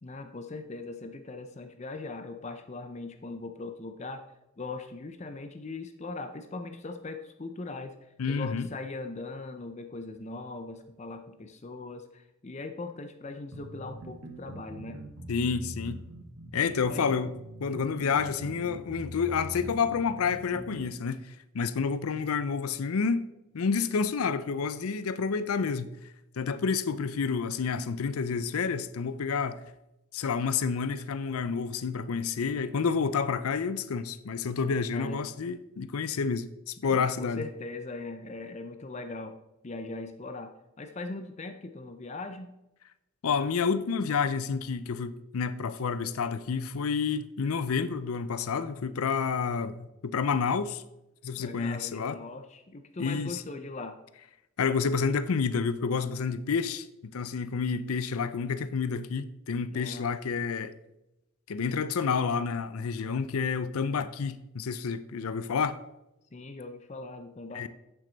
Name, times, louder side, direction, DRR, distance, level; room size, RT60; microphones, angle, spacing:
voice 1, 0.0-4.3 4.6-15.0 16.9-17.1 34.9-35.3 36.9-39.4 39.6-42.5 51.3-54.0 59.7-60.2 66.3-67.7, left 3 dB, 30° left, 0.5 m, -40 dB
voice 2, 8.2-8.7 15.3-16.0 16.5-17.3 17.6-23.2 23.5-25.9 26.4-29.6 30.1-37.4 43.2-50.8 51.2-52.2 53.0-53.4 54.6-56.9 57.1-60.7 61.5-65.8 67.5-67.7, left 5 dB, 85° left, 0.5 m, -29 dB
sound 1, 13.5-20.9, right 1 dB, 85° right, 1.3 m, -43 dB
8.4 x 7.1 x 3.9 m
head